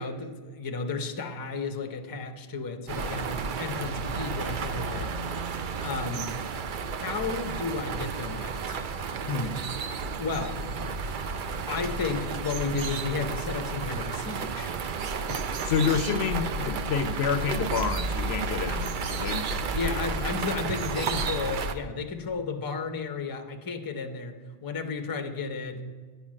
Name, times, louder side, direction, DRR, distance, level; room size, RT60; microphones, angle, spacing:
voice 1, 0.0-5.1 5.8-6.3 7.0-8.9 9.3-9.6 10.2-11.0 11.7-14.7 19.5-25.8, left 4 dB, 25° left, 0.5 m, -33 dB
sound 1, 2.9-21.7, right 4 dB, 55° right, 0.6 m, -32 dB
voice 2, 15.3-19.6, left 6 dB, 70° left, 0.8 m, -29 dB
9.0 x 5.6 x 7.3 m
omnidirectional pair, 1.2 m